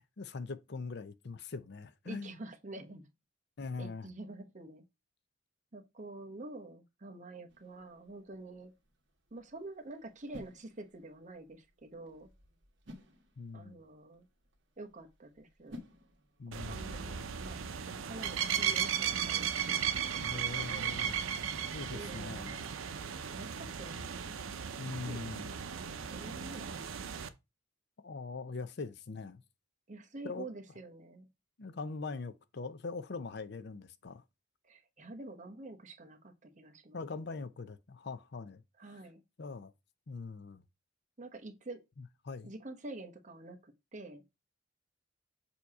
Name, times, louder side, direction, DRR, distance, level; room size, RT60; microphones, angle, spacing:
voice 1, 0.2-2.4 3.6-4.1 13.4-13.8 16.4-17.1 20.1-21.1 21.7-22.7 24.0-24.1 24.8-25.6 28.0-29.4 30.2-30.5 31.6-34.2 36.9-38.6 39.4-39.7 40.1-40.6 42.2-42.5, left 4 dB, 55° left, 0.6 m, -42 dB
voice 2, 2.1-3.1 3.8-4.8 5.7-8.7 9.3-12.3 13.5-14.3 14.8-15.8 16.5-21.0 21.9-22.6 23.3-24.5 25.0-25.5 26.1-26.8 29.9-31.3 34.6-37.0 38.8-39.2 41.2-41.8 42.4-44.2, right 2 dB, 40° right, 1.0 m, -48 dB
sound 1, 7.5-16.8, left 1 dB, 60° right, 1.4 m, -56 dB
sound 2, 16.5-27.3, right 8 dB, 85° right, 0.6 m, -36 dB
6.9 x 2.9 x 4.7 m
head